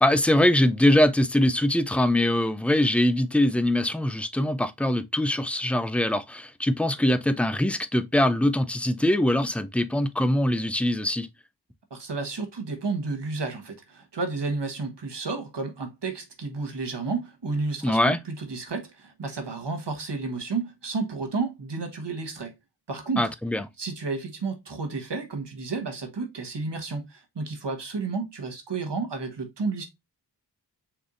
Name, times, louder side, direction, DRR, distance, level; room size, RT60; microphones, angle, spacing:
voice 1, 0.0-11.3 17.8-18.2 23.2-23.6, left 1 dB, 5° left, 0.5 m, -22 dB
voice 2, 11.9-22.5 22.9-23.3 23.8-29.8, right 4 dB, 75° right, 1.4 m, -31 dB
5.9 x 3.4 x 2.5 m
wide cardioid pair, 55°, 41 cm